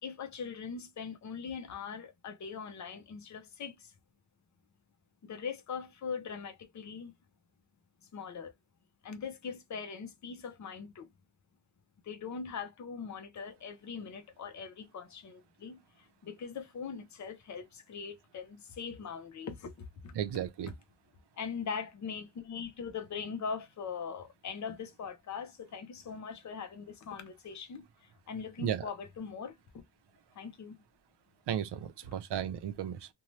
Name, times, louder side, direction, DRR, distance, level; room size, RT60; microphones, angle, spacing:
voice 1, 0.0-3.9 5.2-7.1 8.1-8.5 9.0-11.1 12.0-20.1 21.4-29.6 30.4-30.8, left 6 dB, 45° left, 0.6 m, -41 dB
voice 2, 20.1-20.7 28.6-28.9 31.5-33.1, right 9 dB, 75° right, 0.6 m, -34 dB
2.7 x 2.2 x 3.0 m
wide cardioid pair, 160°, 41 cm